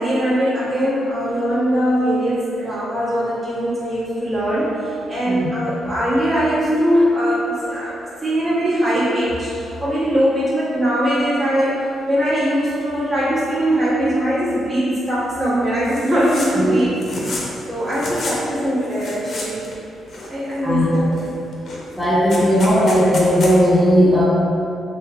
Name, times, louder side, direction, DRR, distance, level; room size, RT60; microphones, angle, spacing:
voice 1, 0.0-11.8 12.1-17.4 17.7-19.6 20.3-21.1 22.2-22.4, equal, 40° right, -11 dB, 1.4 m, -21 dB
sound 1, 15.8-16.5 16.8-17.6 17.9-18.4 18.8-19.8 20.1-20.7 21.1-21.3 21.5-23.5, left 2 dB, 60° left, 0.6 m, -31 dB
voice 2, 22.0-24.2, equal, 10° left, -9 dB, 0.7 m, -16 dB
3.1 x 3.0 x 2.3 m, 2.7 s
supercardioid pair, 65°, 0 cm